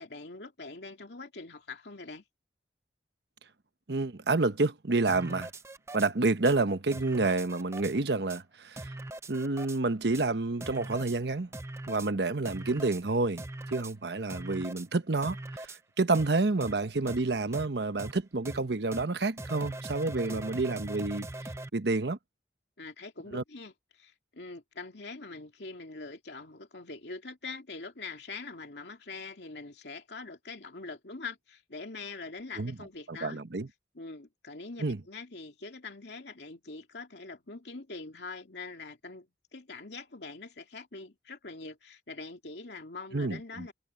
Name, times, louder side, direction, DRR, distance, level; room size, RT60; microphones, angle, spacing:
voice 1, 0.0-2.2 20.2-20.4 22.8-33.4 33.9-43.7, left 3 dB, 75° left, 2.4 m, -43 dB
voice 2, 3.9-5.5 5.9-8.9 9.3-11.5 11.9-13.4 13.7-21.3 21.7-22.2 23.3-23.4 32.6-32.7 33.1-33.7 34.8-35.0 43.1-43.7, right 3 dB, 75° right, 1.0 m, -29 dB
sound 1, 5.1-6.1 6.4-6.5 6.9-7.9 8.3-8.4 8.8-9.8 10.1-10.2 10.6-11.2 11.5-12.1 12.4-13.0 13.4-13.9 14.3-14.9 15.2-15.8 16.1-16.3 16.6-16.7 17.1-17.2 17.5-17.7 18.0-18.1 18.4-18.6 18.9-19.0 19.4-21.7, right 2 dB, 15° right, 0.5 m, -41 dB
head